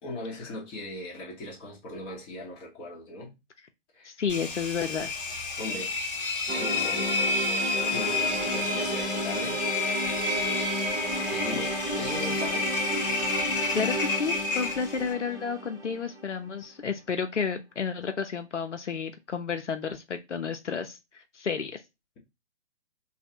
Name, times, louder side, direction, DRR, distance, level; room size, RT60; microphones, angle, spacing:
voice 1, 0.0-3.3 3.9-4.1 5.6-6.0 6.5-7.2 7.9-9.7 11.3-12.7, left 2 dB, 15° left, 0.9 m, -39 dB
voice 2, 4.0-5.1 13.7-21.8, left 6 dB, 80° left, 0.7 m, -31 dB
Engine, 4.3-15.1, left 3 dB, 50° left, 1.0 m, -30 dB
sound 1, 6.5-16.5, equal, 10° right, 0.6 m, -33 dB
3.2 x 2.3 x 2.8 m
figure-of-eight pair, 130°, 35 cm